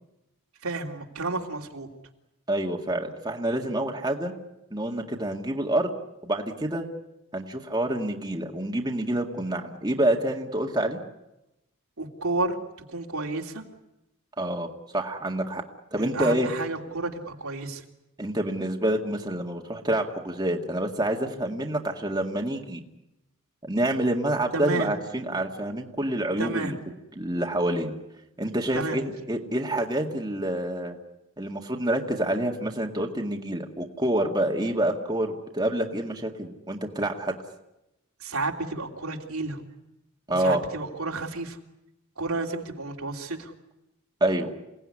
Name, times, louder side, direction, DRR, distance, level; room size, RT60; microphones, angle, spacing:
voice 1, 0.6-1.9 12.0-12.6 12.9-13.6 16.0-17.8 24.5-24.9 26.4-26.7 28.7-29.0 38.2-39.6 40.3-41.6 42.2-43.5, right 3 dB, 80° right, 1 dB, 3.0 m, -31 dB
voice 2, 2.5-4.3 4.7-5.9 6.2-6.9 7.3-11.0 14.4-14.7 14.9-15.6 15.9-16.5 18.2-22.8 23.6-26.8 27.2-28.0 28.4-31.0 31.4-37.4 40.3-40.6 44.2-44.5, right 1 dB, 20° right, 1 dB, 1.9 m, -27 dB
28.5 x 18.5 x 9.8 m, 0.91 s
head